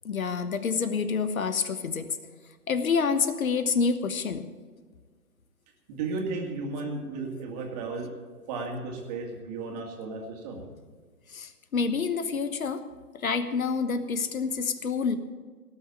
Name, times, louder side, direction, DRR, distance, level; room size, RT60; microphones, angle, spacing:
voice 1, 0.0-2.1 2.7-4.5 11.3-12.8 13.1-15.2, left 5 dB, 60° left, 11 dB, 1.2 m, -28 dB
voice 2, 5.9-8.1 8.5-10.6, right 3 dB, 25° right, 1 dB, 2.5 m, -34 dB
18.0 x 6.5 x 8.5 m, 1.5 s
figure-of-eight pair, 140°, 47 cm